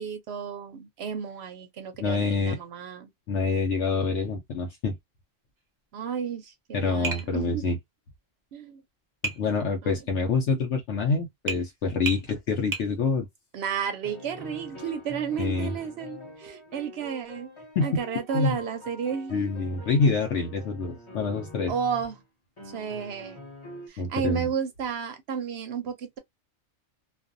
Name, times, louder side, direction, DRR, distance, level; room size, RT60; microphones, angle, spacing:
voice 1, 0.0-3.1 5.9-7.6 8.5-8.8 9.8-9.9 13.5-17.5 17.8-19.5 21.7-22.1 22.7-23.4 23.9-26.2, right 7 dB, 65° right, 0.7 m, -32 dB
voice 2, 2.0-2.6 3.3-5.0 6.7-7.8 9.2-13.3 15.4-15.7 17.8-18.0 18.3-18.6 19.3-21.7 24.0-24.5, left 4 dB, 70° left, 0.9 m, -26 dB
Tap, 7.0-7.3 9.2-9.4 11.5-11.6 12.0-12.2 12.7-12.9, right 4 dB, 25° right, 0.4 m, -30 dB
sound 1, 12.3-13.3 14.0-22.2 22.6-23.9, equal, 30° left, 0.7 m, -45 dB
2.4 x 2.3 x 2.5 m
omnidirectional pair, 1.3 m